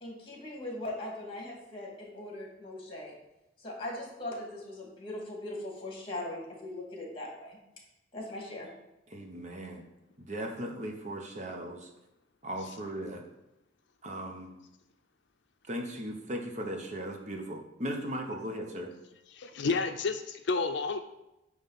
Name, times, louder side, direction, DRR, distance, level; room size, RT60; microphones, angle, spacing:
voice 1, 0.0-3.1 3.6-7.6 8.1-8.7, left 1 dB, 30° left, -1 dB, 2.1 m, -40 dB
voice 2, 9.1-9.8 10.2-11.9 12.4-13.2 14.0-14.5 15.6-18.9, equal, 40° right, 3 dB, 1.0 m, -37 dB
voice 3, 19.3-21.0, left 4 dB, 65° left, 7 dB, 0.5 m, -30 dB
9.2 x 3.2 x 5.7 m, 0.92 s
head